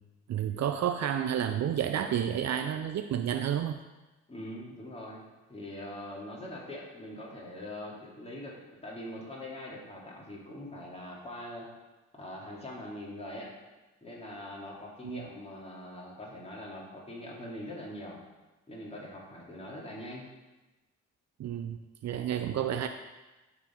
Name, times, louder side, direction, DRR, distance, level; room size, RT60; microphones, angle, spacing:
voice 1, 0.3-3.8 15.0-15.2 21.4-22.9, right 9 dB, 65° right, 7 dB, 0.5 m, -30 dB
voice 2, 4.3-5.2 5.5-8.5 8.8-11.7 12.2-13.5 14.0-18.2 18.7-20.3, left 1 dB, 20° left, -4 dB, 2.6 m, -42 dB
11.5 x 4.1 x 4.5 m, 1.1 s
cardioid pair, 65°, 29 cm